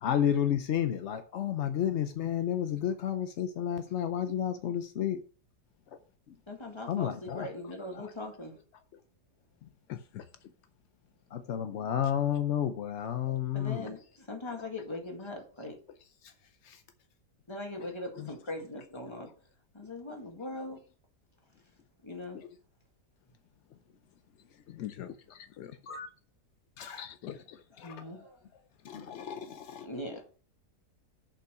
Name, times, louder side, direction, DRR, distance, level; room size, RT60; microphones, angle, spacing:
voice 1, 0.0-5.2 6.9-7.5 7.9-8.1 11.3-13.9 16.2-16.3 16.6-16.8 22.3-22.5 24.7-25.1 25.8-26.1 26.8-27.4 27.8-28.0 28.8-29.9 30.1-30.2, left 10 dB, 60° left, 0.7 m, -32 dB
voice 2, 6.5-8.5 13.5-15.8 17.5-19.3 19.7-20.8 22.0-22.4 27.7-28.4 29.8-30.2, left 2 dB, 15° left, 1.8 m, -40 dB
voice 3, 9.9-10.2 18.2-18.3 24.8-25.7 27.0-27.6, left 12 dB, 75° left, 1.2 m, -43 dB
6.9 x 5.7 x 6.2 m
omnidirectional pair, 1.8 m